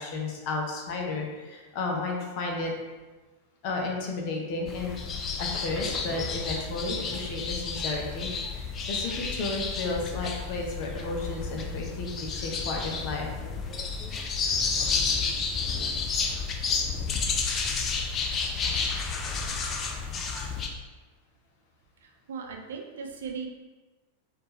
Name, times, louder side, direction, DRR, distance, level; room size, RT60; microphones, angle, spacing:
voice 1, 0.0-2.7 3.6-5.0 5.4-13.3, left 3 dB, 45° left, 0 dB, 0.8 m, -33 dB
sound 1, 4.7-20.7, left 5 dB, 25° left, 0.5 m, -31 dB
voice 2, 22.0-23.5, right 5 dB, 60° right, 2 dB, 0.5 m, -38 dB
4.4 x 2.5 x 3.1 m, 1.2 s
figure-of-eight pair, 90°, 0 cm